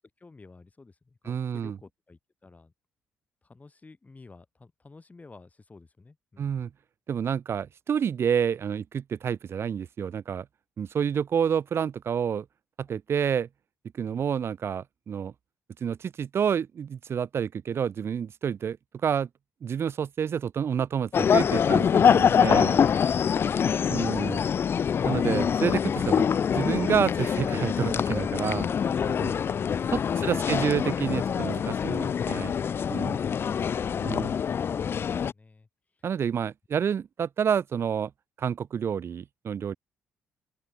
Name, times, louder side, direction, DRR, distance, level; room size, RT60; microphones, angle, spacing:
voice 1, 0.2-2.7 3.4-6.6 12.9-13.0 14.1-14.3 28.6-29.6 30.1-30.9 31.6-31.7 32.7-35.7, left 3 dB, 25° left, 7.8 m, -50 dB
voice 2, 1.3-1.8 6.4-6.7 7.1-10.5 10.8-12.4 12.8-13.5 13.9-15.3 15.8-18.8 19.0-19.3 19.6-22.8 23.9-24.4 25.0-28.7 29.9-30.0 30.3-32.5 32.9-33.2 34.0-34.3 36.0-38.1 38.4-39.8, right 7 dB, 50° right, 0.9 m, -29 dB
sound 1, 21.1-35.3, left 7 dB, 45° left, 0.4 m, -25 dB
open air
hypercardioid pair, 45°, 5 cm